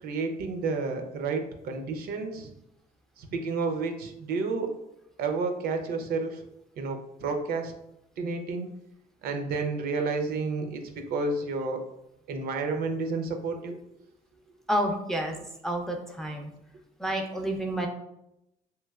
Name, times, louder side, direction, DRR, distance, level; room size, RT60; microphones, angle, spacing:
voice 1, 0.0-2.5 3.2-4.7 5.2-6.4 6.8-7.7 8.2-8.7 9.2-11.8 12.3-13.7, right 4 dB, 65° right, 5 dB, 0.5 m, -30 dB
voice 2, 14.7-15.4 15.6-16.5 17.0-17.9, right 1 dB, ahead, 2 dB, 0.4 m, -29 dB
3.1 x 2.9 x 2.3 m, 0.84 s
cardioid pair, 110°, 17 cm